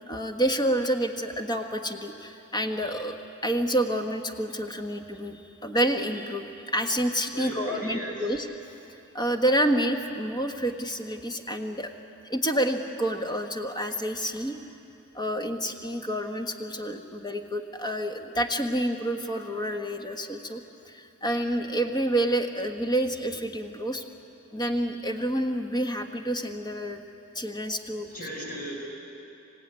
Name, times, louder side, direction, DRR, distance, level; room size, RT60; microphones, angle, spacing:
voice 1, 0.1-3.2 3.4-8.5 9.1-11.9 12.2-14.6 15.1-20.6 20.8-24.0 24.5-27.0 27.3-28.1, right 1 dB, 20° left, 4 dB, 1.4 m, -28 dB
voice 2, 7.3-8.1 28.1-28.7, equal, 40° left, -2 dB, 6.3 m, -35 dB
26.0 x 16.5 x 9.7 m, 2.8 s
head